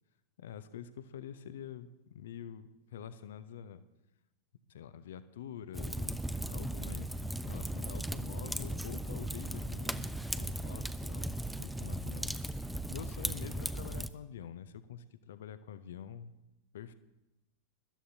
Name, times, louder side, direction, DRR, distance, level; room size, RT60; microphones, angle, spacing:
voice 1, 0.4-3.9 4.7-16.3 16.7-16.9, left 9 dB, 60° left, 13 dB, 0.7 m, -47 dB
Fire, 5.7-14.1, right 1 dB, ahead, 0.5 m, -37 dB
22.0 x 12.5 x 2.8 m, 0.97 s
figure-of-eight pair, 90°, 0 cm